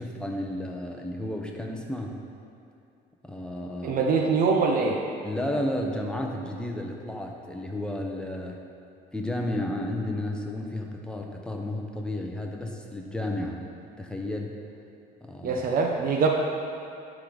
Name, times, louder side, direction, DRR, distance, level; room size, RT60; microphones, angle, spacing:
voice 1, 0.0-2.1 3.2-4.0 5.2-8.6 9.1-13.6 14.0-14.6 15.2-15.6, left 1 dB, 5° left, 1 dB, 0.9 m, -32 dB
voice 2, 3.8-5.0 15.4-16.3, right 4 dB, 60° right, 1 dB, 0.8 m, -23 dB
11.5 x 4.0 x 5.0 m, 2.5 s
cardioid pair, 110°, 17 cm